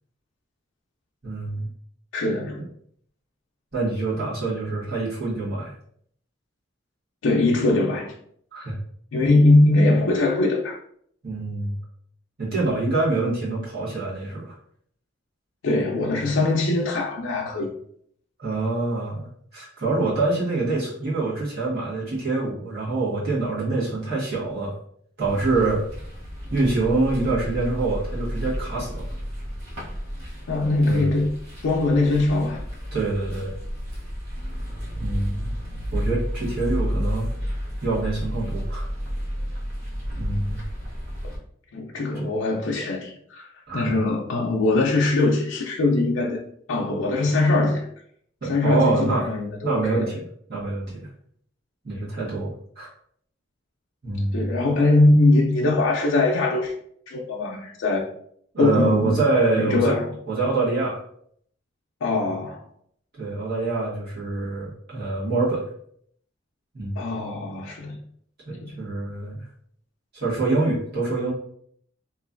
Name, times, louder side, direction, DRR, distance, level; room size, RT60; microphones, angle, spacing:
voice 1, 1.2-1.7 2.6-2.7 3.7-5.7 8.5-8.8 11.2-11.8 12.4-14.5 18.4-24.7 25.2-25.8 26.5-29.0 30.8-31.1 32.9-33.5 35.0-35.5 35.9-37.3 37.8-38.9 40.2-40.6 42.2-42.3 43.7-43.9 48.4-49.3 49.6-50.2 50.5-51.1 51.8-52.9 54.0-54.6 58.5-59.9 60.3-61.0 63.2-65.6 66.7-67.1 68.5-69.5 70.1-71.3, right 3 dB, 50° right, 1.4 m, -25 dB
voice 2, 2.1-2.6 7.2-8.1 9.1-10.8 15.6-17.7 30.5-31.4 31.6-32.6 41.2-41.3 41.7-46.4 46.7-47.9 48.4-50.1 54.3-56.7 57.1-58.1 58.6-59.2 59.6-60.1 62.0-62.6 67.0-68.0 68.6-68.7, left 2 dB, 75° left, 0.4 m, -21 dB
sound 1, 25.2-41.4, equal, 85° right, 1.0 m, -31 dB
3.0 x 2.5 x 2.5 m
head